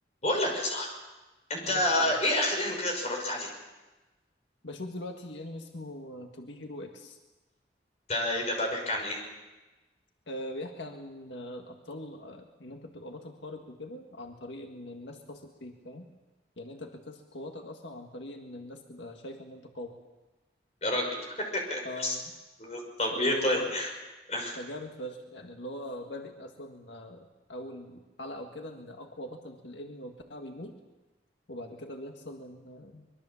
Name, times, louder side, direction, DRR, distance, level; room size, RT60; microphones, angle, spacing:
voice 1, 0.2-0.9 1.5-3.5 8.1-9.2 20.8-22.2 22.6-23.9 24.3-24.6, left 1 dB, 35° left, 2 dB, 5.7 m, -29 dB
voice 2, 1.6-2.1 4.6-7.2 10.3-16.1 16.6-20.0 21.9-22.2 23.1-23.8 24.6-30.7 31.5-33.2, left 1 dB, 85° left, 3 dB, 1.8 m, -42 dB
24.5 x 22.5 x 7.2 m, 1.1 s
head